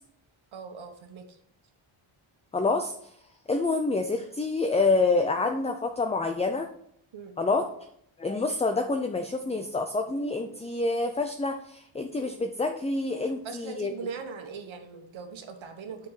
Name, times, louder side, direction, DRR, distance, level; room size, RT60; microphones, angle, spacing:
voice 1, 0.5-1.4 7.1-7.3 13.4-16.1, right 5 dB, 65° right, 5 dB, 1.5 m, -40 dB
voice 2, 2.5-3.1 3.5-6.7 7.4-7.6 8.2-13.9, left 3 dB, 15° left, 6 dB, 0.5 m, -27 dB
8.8 x 6.4 x 4.1 m, 0.68 s
wide cardioid pair, 140°, 49 cm